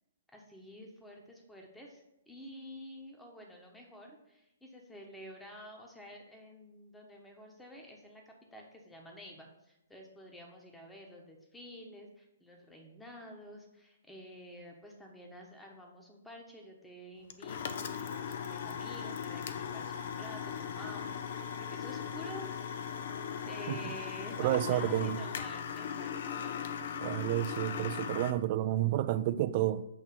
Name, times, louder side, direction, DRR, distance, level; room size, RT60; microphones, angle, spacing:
voice 1, 0.3-22.5 23.4-26.8, equal, 5° left, 1.1 m, -50 dB
sound 1, 17.3-28.3, left 7 dB, 50° left, 0.5 m, -38 dB
voice 2, 24.4-25.2 27.0-29.9, right 13 dB, 40° right, 0.3 m, -30 dB
8.1 x 3.0 x 5.9 m
figure-of-eight pair, 125°, 0 cm